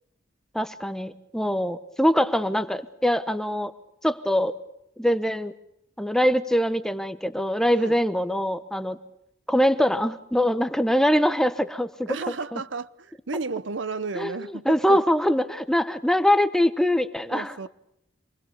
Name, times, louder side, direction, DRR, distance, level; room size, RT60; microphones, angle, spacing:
voice 1, 0.5-3.7 4.0-4.5 5.0-5.5 6.0-9.0 9.5-12.2 12.5-12.6 14.1-17.7, equal, 5° left, 1.0 m, -23 dB
voice 2, 12.1-15.0 17.3-17.7, right 3 dB, 75° right, 0.9 m, -33 dB
26.5 x 20.5 x 7.0 m
head